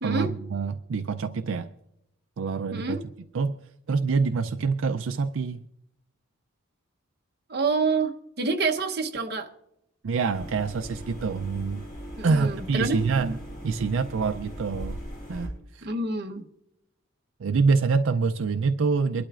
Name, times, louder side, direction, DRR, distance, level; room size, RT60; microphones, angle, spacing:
voice 1, 0.0-1.7 2.4-3.0 3.3-3.6 3.9-5.6 10.0-11.8 12.2-13.4 13.6-15.0 15.3-15.9 17.4-19.2, right 4 dB, 75° right, 0.4 m, -26 dB
voice 2, 7.5-8.1 8.4-9.5 12.2-13.1 15.8-16.4, right 3 dB, 50° right, 0.9 m, -27 dB
sound 1, 10.3-15.5, equal, 40° left, 3.9 m, -39 dB
23.5 x 12.0 x 2.4 m
head